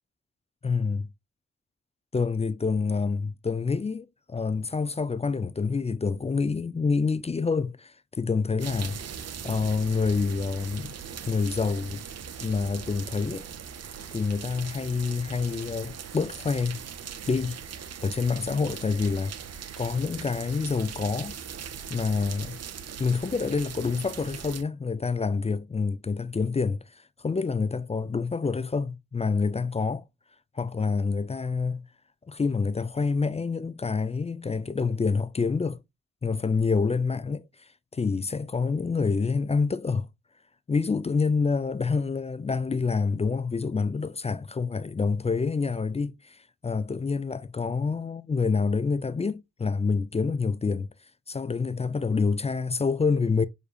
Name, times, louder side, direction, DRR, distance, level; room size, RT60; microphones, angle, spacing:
voice 1, 0.6-1.1 2.1-9.0 9.4-10.9 11.3-12.0 12.4-13.4 14.1-16.8 17.3-17.6 18.0-19.3 19.8-21.4 21.9-22.6 23.0-30.0 30.5-31.9 32.3-35.8 36.2-37.4 37.9-40.1 40.7-50.9 51.3-53.5, left 4 dB, 20° left, 0.4 m, -27 dB
sound 1, 8.6-24.6, right 7 dB, 60° right, 0.6 m, -40 dB
6.7 x 2.6 x 2.2 m
supercardioid pair, 40°, 30 cm